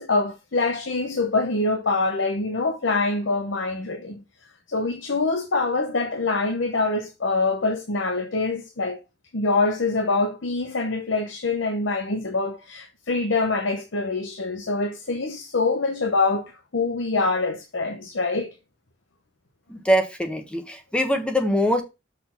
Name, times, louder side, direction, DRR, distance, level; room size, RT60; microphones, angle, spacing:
voice 1, 0.0-4.2 4.7-9.0 9.3-18.5, left 3 dB, 65° left, 0.8 m, -25 dB
voice 2, 19.7-21.8, equal, 5° left, 1.2 m, -23 dB
6.2 x 4.4 x 5.6 m
head